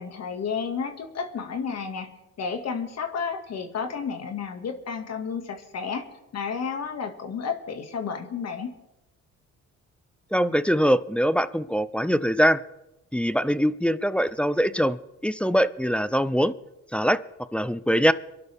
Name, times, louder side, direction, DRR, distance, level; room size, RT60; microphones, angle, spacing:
voice 1, 0.0-2.1 2.4-6.1 6.3-8.7, left 6 dB, 60° left, 5 dB, 2.1 m, -31 dB
voice 2, 10.3-12.6 13.1-15.0 15.2-16.5 16.9-17.2 17.5-18.1, equal, 5° left, 13 dB, 0.5 m, -22 dB
24.0 x 11.5 x 3.6 m, 0.93 s
cardioid pair, 90°, 30 cm